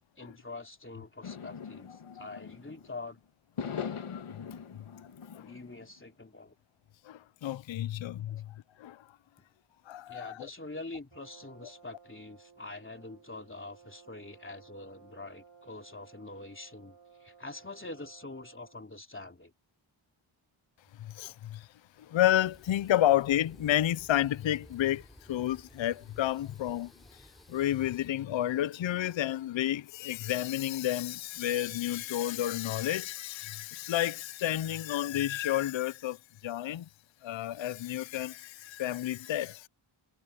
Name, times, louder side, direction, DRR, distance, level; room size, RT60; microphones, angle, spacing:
voice 1, 0.0-3.2 5.4-6.6 8.3-8.4 10.1-19.5, left 2 dB, 25° left, 3.0 m, -45 dB
sound 1, 1.2-3.0 3.6-5.8, left 7 dB, 90° left, 1.8 m, -41 dB
voice 2, 7.0-9.1 9.9-10.5 21.0-21.7 22.0-36.9 37.2-39.7, left 12 dB, 65° left, 0.6 m, -31 dB
Brass instrument, 11.1-18.9, right 6 dB, 55° right, 3.5 m, -57 dB
sound 2, 22.5-28.1, equal, ahead, 6.8 m, -56 dB
wide cardioid pair, 80°, 49 cm